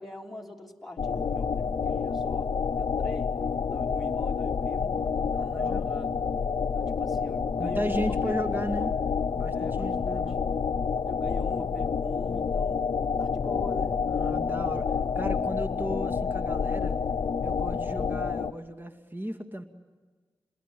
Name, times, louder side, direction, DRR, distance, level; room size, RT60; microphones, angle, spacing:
voice 1, 0.0-5.0 5.3-6.2 6.7-9.0 9.5-10.3 11.0-12.9 13.2-14.3, left 1 dB, ahead, -1 dB, 3.5 m, -43 dB
sound 1, 1.0-18.5, left 6 dB, 70° left, 0.8 m, -28 dB
voice 2, 5.3-5.8 7.6-8.9 9.4-10.4 14.1-14.9 15.2-17.0 17.4-19.6, equal, 25° right, 6 dB, 2.2 m, -35 dB
28.5 x 21.5 x 9.3 m, 1.4 s
cardioid pair, 50°, 8 cm